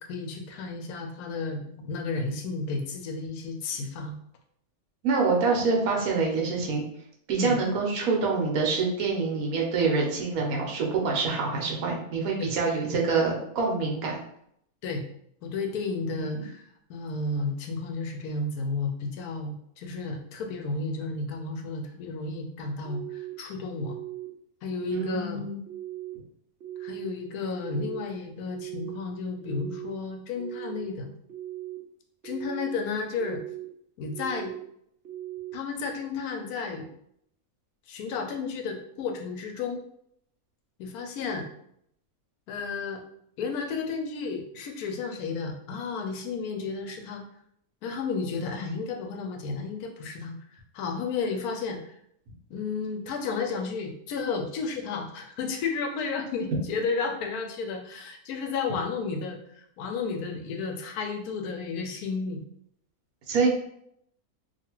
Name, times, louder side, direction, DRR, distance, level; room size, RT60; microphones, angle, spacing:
voice 1, 0.1-4.2 7.4-7.6 12.4-12.5 14.8-15.0 15.4-16.6 16.9-24.0 24.6-25.4 26.8-31.1 32.2-33.4 34.0-34.5 35.5-36.9 37.9-39.8 40.8-41.5 42.5-43.0 43.4-47.2 47.8-51.9 52.5-62.4, left 4 dB, 85° left, 4 dB, 1.1 m, -32 dB
voice 2, 5.0-6.8 7.3-14.2 16.1-16.4 24.9-25.6 63.3-63.5, right 4 dB, 75° right, -1 dB, 1.2 m, -26 dB
sound 1, 22.8-23.3 23.8-24.3 24.7-25.2 25.7-26.1 26.6-27.1 27.5-28.0 28.5-29.0 29.4-29.9 30.4-30.8 31.3-31.8 32.2-32.7 33.2-33.7 34.1-34.6 35.0-35.5, right 14 dB, 55° right, 0.7 m, -38 dB
2.8 x 2.4 x 2.9 m, 0.70 s
omnidirectional pair, 1.5 m